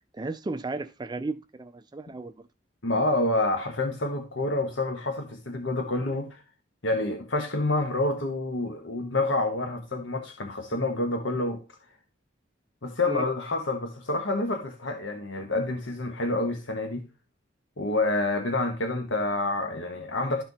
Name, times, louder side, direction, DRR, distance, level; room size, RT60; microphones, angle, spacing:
voice 1, 0.1-2.5 13.1-13.3, right 3 dB, 20° right, 0.4 m, -34 dB
voice 2, 2.8-6.4 6.8-11.6 12.8-17.1 17.8-20.4, left 2 dB, 70° left, 1.2 m, -28 dB
12.5 x 4.3 x 4.0 m
head